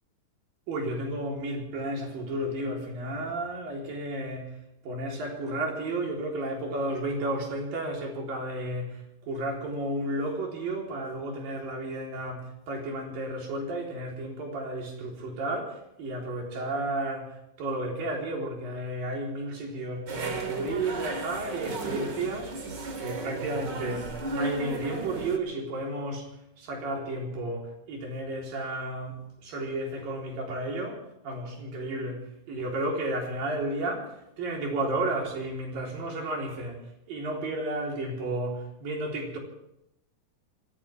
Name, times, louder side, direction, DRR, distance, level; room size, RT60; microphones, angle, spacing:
voice 1, 0.7-4.6 4.8-22.6 23.0-26.3 26.6-39.4, right 1 dB, 70° right, 0 dB, 5.5 m, -32 dB
sound 1, 20.1-25.4, right 3 dB, 35° right, 2.1 m, -35 dB
25.0 x 16.5 x 3.5 m, 0.82 s
omnidirectional pair, 4.2 m